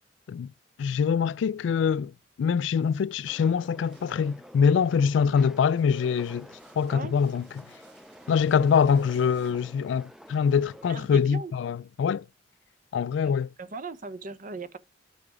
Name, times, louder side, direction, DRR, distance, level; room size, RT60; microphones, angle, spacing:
voice 1, 0.8-2.1 2.4-6.5 6.8-7.6 8.3-12.3 12.9-13.5, left 6 dB, 75° left, 0.3 m, -24 dB
sound 1, 2.8-11.4, right 3 dB, 70° right, 4.7 m, -62 dB
sound 2, 3.3-11.0, right 1 dB, ahead, 0.4 m, -49 dB
voice 2, 10.9-11.5 13.2-13.3 13.6-14.8, right 3 dB, 45° right, 0.7 m, -38 dB
6.7 x 4.8 x 4.9 m
head